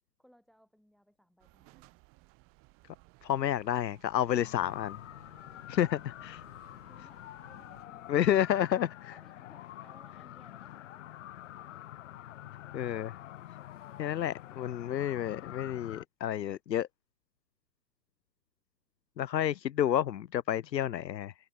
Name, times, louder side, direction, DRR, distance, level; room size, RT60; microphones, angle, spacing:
voice 1, 0.2-2.0 5.9-6.4 6.9-8.3 8.7-12.1, equal, ahead, 4.1 m, -64 dB
sound 1, 1.4-7.9, right 25 dB, 25° right, 7.2 m, -61 dB
voice 2, 3.2-5.0 5.7-6.4 8.1-9.1 12.7-13.1 14.0-16.9 19.2-21.3, left 11 dB, 80° left, 1.0 m, -30 dB
sound 2, 4.4-16.0, left 13 dB, 45° left, 2.8 m, -47 dB
hypercardioid pair, 155°, 49 cm